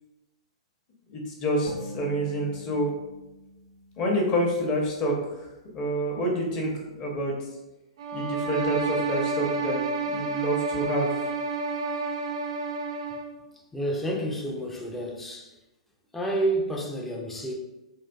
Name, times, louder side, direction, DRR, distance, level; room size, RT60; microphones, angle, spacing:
voice 1, 1.1-2.9 4.0-5.1 5.7-6.7 7.0-7.3 8.1-11.2, equal, 30° left, -1 dB, 0.7 m, -27 dB
sound 1, 1.7-5.1, equal, 65° left, 0.7 m, -44 dB
sound 2, 8.0-13.4, right 3 dB, 60° right, 0.4 m, -30 dB
voice 2, 13.7-15.5 16.1-17.5, right 1 dB, 5° left, -1 dB, 0.4 m, -29 dB
3.4 x 2.4 x 2.2 m, 0.99 s
figure-of-eight pair, 105°, 3 cm